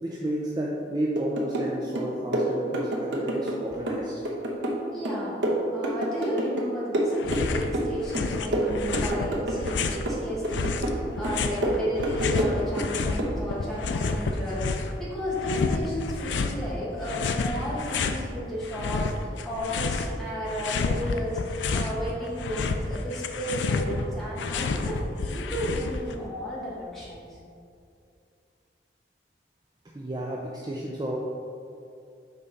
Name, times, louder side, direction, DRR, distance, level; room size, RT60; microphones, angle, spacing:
voice 1, 0.0-4.2 29.9-31.2, right 1 dB, 20° right, -3 dB, 0.5 m, -32 dB
sound 1, 1.2-1.7 2.0-3.6 3.9-6.7 6.9-7.9 8.1-9.8 10.1-11.0 11.2-12.9 13.2-13.4, right 1 dB, 80° right, 1.0 m, -28 dB
voice 2, 4.9-5.4 5.7-27.4, left 1 dB, ahead, -8 dB, 1.5 m, -33 dB
sound 2, 7.2-7.7 8.0-10.1 10.5-13.2 13.5-15.0 15.4-16.6 17.0-18.2 18.6-20.2 20.5-22.0 22.3-26.1, left 4 dB, 80° left, 0.4 m, -29 dB
5.6 x 4.1 x 5.3 m, 2.5 s
head